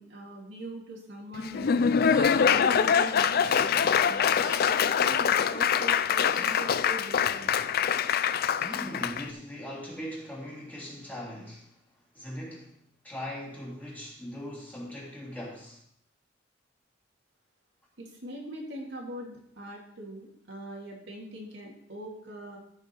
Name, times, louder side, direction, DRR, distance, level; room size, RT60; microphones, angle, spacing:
voice 1, 0.0-1.7 2.1-4.3 4.6-7.5 18.0-22.6, right 1 dB, 75° right, -2 dB, 2.5 m, -42 dB
Laughter / Applause, 1.4-9.3, left 7 dB, 55° left, 0.4 m, -24 dB
sound 1, 2.1-2.5 4.4-4.7 6.3-6.7 8.6-9.1, equal, 5° right, 1.4 m, -42 dB
voice 2, 8.8-11.7 12.1-12.7 13.0-15.8, equal, 10° left, -5 dB, 3.0 m, -40 dB
14.5 x 5.3 x 4.5 m, 0.68 s
head